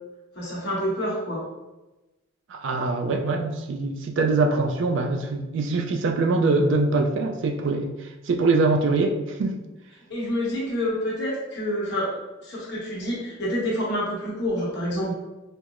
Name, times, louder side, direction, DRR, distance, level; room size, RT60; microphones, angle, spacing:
voice 1, 0.3-1.4 10.1-12.2 12.4-15.1, equal, 55° left, -6 dB, 1.1 m, -27 dB
voice 2, 2.5-9.6, right 3 dB, 65° right, 3 dB, 0.3 m, -23 dB
4.4 x 2.0 x 2.4 m, 1.1 s
head